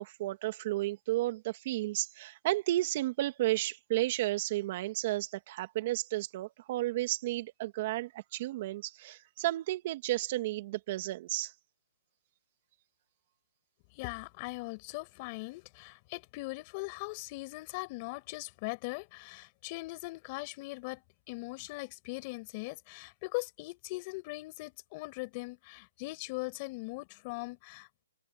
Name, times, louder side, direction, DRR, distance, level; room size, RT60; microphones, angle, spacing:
voice 1, 0.0-11.5, right 16 dB, 35° right, 2.3 m, -32 dB
voice 2, 13.9-21.0 21.3-28.0, left 25 dB, 30° left, 5.3 m, -40 dB
hypercardioid pair, 160°, 0 cm